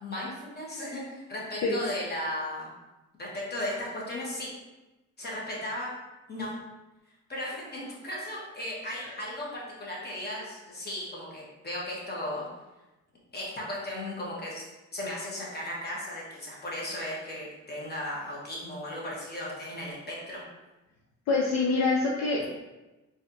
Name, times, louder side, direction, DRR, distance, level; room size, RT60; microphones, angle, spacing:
voice 1, 0.0-2.7 3.2-4.5 5.2-5.9 6.3-6.6 7.3-12.5 13.3-14.6 14.9-20.4, left 1 dB, 35° left, -5 dB, 1.3 m, -36 dB
voice 2, 21.3-22.5, left 3 dB, 60° left, -3 dB, 0.6 m, -25 dB
4.0 x 2.8 x 2.6 m, 1.1 s
cardioid pair, 90°, 30 cm